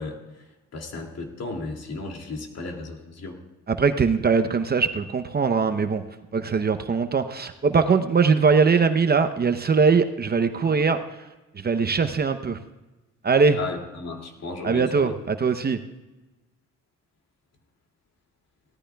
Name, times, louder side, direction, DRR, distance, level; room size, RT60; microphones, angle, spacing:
voice 1, 0.0-3.4 13.5-15.1, left 3 dB, 55° left, 2 dB, 2.5 m, -35 dB
voice 2, 3.7-6.0 6.3-11.0 11.5-12.6 13.2-13.6 14.6-15.8, right 5 dB, 35° right, 9 dB, 0.8 m, -21 dB
18.0 x 13.5 x 2.3 m, 1.1 s
cardioid pair, 90°, 30 cm